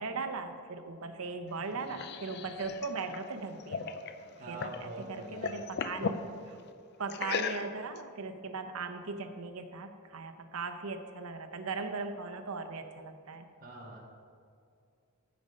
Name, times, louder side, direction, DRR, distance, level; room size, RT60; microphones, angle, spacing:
voice 1, 0.0-3.8 4.5-6.6 7.0-13.4, right 4 dB, 80° right, 7 dB, 0.8 m, -39 dB
sound 1, 1.5-4.9 5.2-6.2 7.1-8.0, left 5 dB, 50° left, 0.5 m, -37 dB
voice 2, 4.4-5.6 13.6-14.0, right 2 dB, 40° right, -2 dB, 1.9 m, -45 dB
15.0 x 5.2 x 5.3 m, 2.3 s
head